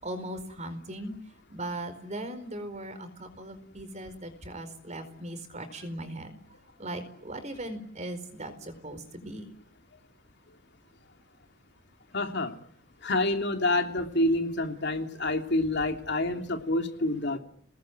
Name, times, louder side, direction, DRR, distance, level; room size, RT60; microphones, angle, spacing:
voice 1, 0.0-1.1 1.5-6.3 6.8-9.5, right 1 dB, 35° right, 9 dB, 4.6 m, -38 dB
voice 2, 12.1-12.5 13.0-17.4, left 2 dB, 55° left, 5 dB, 3.0 m, -27 dB
29.5 x 20.0 x 9.3 m, 0.66 s
head